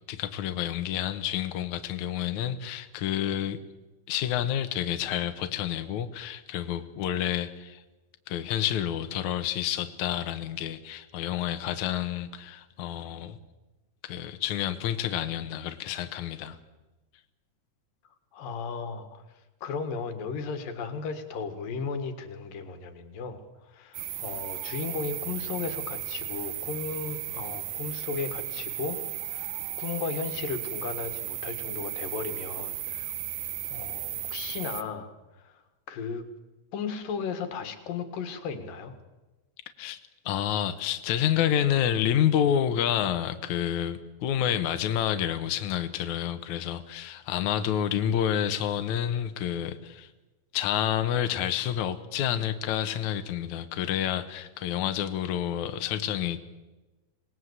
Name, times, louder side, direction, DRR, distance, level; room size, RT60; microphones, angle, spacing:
voice 1, 0.1-3.6 4.1-7.8 8.3-13.4 14.0-16.6 39.8-40.0 40.3-50.1 50.5-56.4, left 10 dB, 70° left, 8 dB, 2.3 m, -29 dB
voice 2, 18.3-33.1 33.7-36.3 36.7-38.9, left 5 dB, 85° left, 9 dB, 3.5 m, -35 dB
sound 1, 23.9-34.8, right 12 dB, 75° right, 2.6 m, -35 dB
26.5 x 19.0 x 8.1 m, 1.1 s
omnidirectional pair, 3.8 m